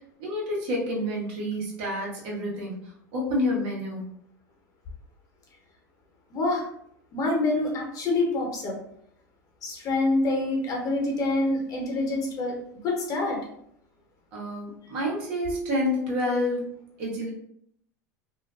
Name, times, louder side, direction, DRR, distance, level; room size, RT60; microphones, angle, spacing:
voice 1, 0.0-2.8 3.1-4.1 14.3-16.6 17.0-17.3, left 1 dB, 65° right, -2 dB, 0.9 m, -28 dB
voice 2, 6.3-6.7 7.1-8.8 9.6-12.5 12.8-13.4, left 2 dB, 40° left, 0 dB, 0.9 m, -26 dB
2.4 x 2.2 x 2.3 m, 0.69 s
hypercardioid pair, 90°, 9 cm